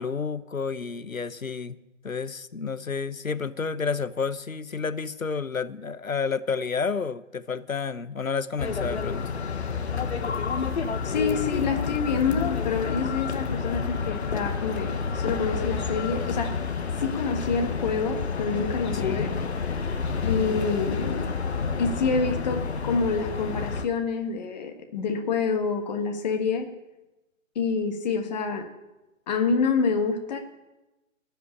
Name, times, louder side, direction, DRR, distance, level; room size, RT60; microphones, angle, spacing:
voice 1, 0.0-1.7 2.0-9.2 18.9-19.3, left 5 dB, 85° left, 15 dB, 0.9 m, -30 dB
sound 1, 8.6-23.9, left 5 dB, 55° left, 1.2 m, -29 dB
voice 2, 11.0-16.7 17.0-19.3 20.2-21.3 21.8-26.7 27.5-28.7 29.3-30.4, left 5 dB, 35° left, 4 dB, 1.5 m, -27 dB
14.0 x 5.9 x 9.9 m, 1.0 s
figure-of-eight pair, 140°, 39 cm